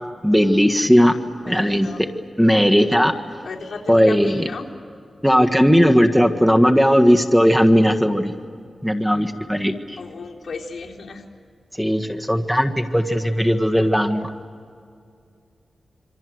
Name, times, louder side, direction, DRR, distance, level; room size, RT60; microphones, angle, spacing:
voice 1, 0.2-1.2 1.5-2.1 2.4-3.1 3.9-4.5 5.2-8.3 8.8-10.0 11.8-14.3, equal, ahead, 5 dB, 1.6 m, -17 dB
voice 2, 1.4-2.0 3.4-4.7 10.0-11.2, left 4 dB, 70° left, -2 dB, 3.9 m, -34 dB
27.0 x 25.5 x 7.9 m, 2.3 s
cardioid pair, 65°, 0 cm